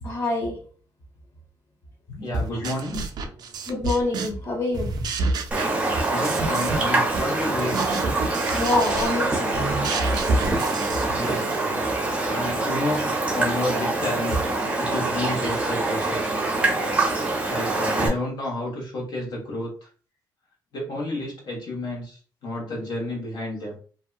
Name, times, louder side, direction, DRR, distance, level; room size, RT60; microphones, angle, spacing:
voice 1, 0.0-0.6 2.2-2.3 3.7-4.9 8.5-9.7, left 2 dB, 35° left, -1 dB, 0.6 m, -26 dB
voice 2, 2.2-3.0 6.1-7.8 11.1-11.6 12.3-14.4 14.8-16.3 17.5-19.9 20.7-23.8, left 1 dB, 70° left, -2 dB, 1.2 m, -30 dB
sound 1, 2.3-4.5 4.7-6.9 7.1-11.5, right 3 dB, 60° right, 0.4 m, -29 dB
Raindrop, 5.5-18.1, right 2 dB, 15° right, 0.6 m, -25 dB
2.6 x 2.2 x 2.4 m, 0.40 s
cardioid pair, 120°, 8 cm